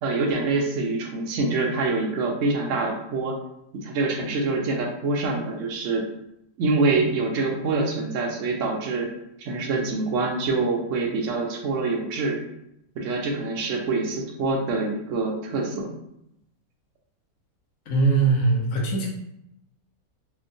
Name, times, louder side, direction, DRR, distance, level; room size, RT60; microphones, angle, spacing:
voice 1, 0.0-3.4 3.7-6.0 6.6-9.1 9.4-12.4 13.0-15.9, right 3 dB, 65° right, 1 dB, 0.8 m, -25 dB
voice 2, 17.9-19.1, right 4 dB, 55° left, -1 dB, 0.9 m, -21 dB
4.4 x 2.1 x 2.6 m, 0.79 s
omnidirectional pair, 1.9 m